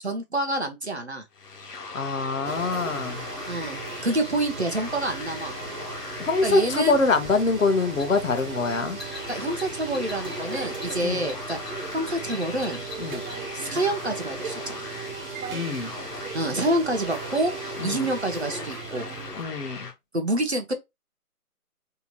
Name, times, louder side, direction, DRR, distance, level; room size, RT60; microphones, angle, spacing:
voice 1, 0.0-1.2 3.5-5.5 6.4-7.0 9.3-11.6 11.9-12.8 13.5-14.9 16.3-19.1 20.1-20.7, right 1 dB, 45° right, 0.5 m, -27 dB
sound 1, 1.3-19.9, left 4 dB, 85° left, 1.0 m, -40 dB
voice 2, 1.9-3.2 6.2-9.0 11.0-11.3 13.0-13.2 15.5-15.9 17.8-18.1 19.3-19.9, left 4 dB, 60° left, 0.7 m, -25 dB
sound 2, 2.4-19.4, right 4 dB, 65° right, 0.9 m, -37 dB
sound 3, 7.2-13.4, left 2 dB, ahead, 0.5 m, -44 dB
2.8 x 2.2 x 2.8 m
figure-of-eight pair, 170°, 46 cm